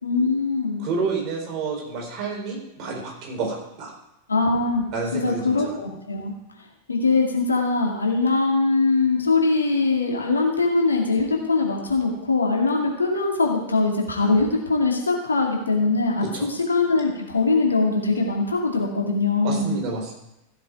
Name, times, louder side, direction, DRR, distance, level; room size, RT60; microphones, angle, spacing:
voice 1, 0.0-0.9 4.3-4.8 5.2-6.3 6.9-19.7, left 3 dB, 75° left, 0 dB, 2.3 m, -22 dB
voice 2, 0.8-3.9 4.9-5.7 16.2-16.5 19.4-20.1, right 4 dB, 40° right, -1 dB, 4.5 m, -29 dB
15.5 x 7.4 x 4.8 m, 0.87 s
figure-of-eight pair, 90°, 0 cm